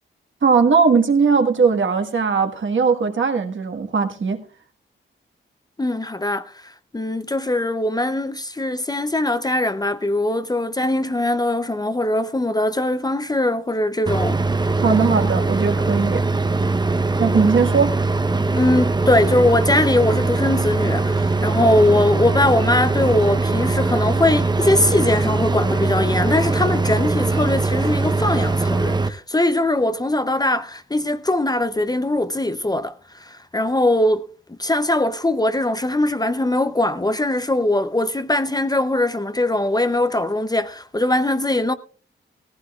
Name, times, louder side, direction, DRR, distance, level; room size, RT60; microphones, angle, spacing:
voice 1, 0.4-4.4 14.8-16.2 17.2-17.9, right 5 dB, 65° right, 1.5 m, -19 dB
voice 2, 5.8-14.4 18.6-41.7, left 1 dB, 20° left, 0.6 m, -21 dB
sound 1, 14.1-29.1, right 3 dB, 20° right, 0.7 m, -21 dB
17.5 x 15.5 x 2.3 m
wide cardioid pair, 100°, 21 cm